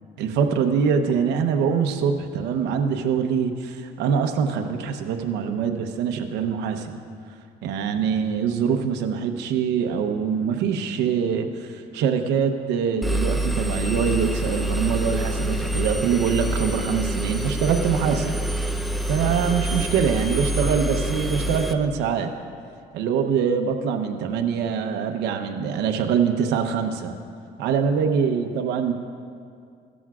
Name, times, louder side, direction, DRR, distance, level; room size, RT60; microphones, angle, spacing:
voice 1, 0.2-6.9 7.6-18.8 19.1-22.3 22.9-27.2 27.6-28.9, right 6 dB, 90° right, 5 dB, 0.9 m, -24 dB
Engine, 13.0-21.7, right 1 dB, ahead, 0.6 m, -26 dB
16.0 x 13.5 x 2.4 m, 2.3 s
cardioid pair, 110°, 17 cm